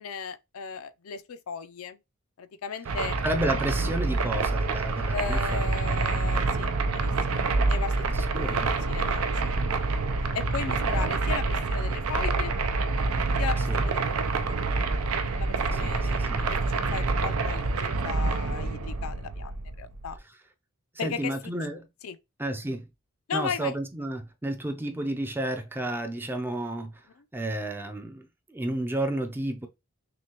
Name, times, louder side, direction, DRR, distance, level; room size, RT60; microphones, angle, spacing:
voice 1, 0.0-2.0 2.4-3.2 5.1-8.0 8.3-9.5 10.3-12.5 13.4-14.6 15.4-19.5 19.8-20.2 21.0-21.3 22.0-22.2 23.3-23.8, left 6 dB, 75° left, 0.5 m, -36 dB
sound 1, 2.9-20.2, right 3 dB, 80° right, 0.5 m, -27 dB
voice 2, 3.2-5.7 8.1-8.8 10.6-11.2 13.7-13.9 15.7-16.5 20.9-21.9 22.4-22.9 23.3-27.1 27.3-29.7, right 1 dB, 10° right, 0.5 m, -32 dB
6.2 x 2.3 x 2.9 m
head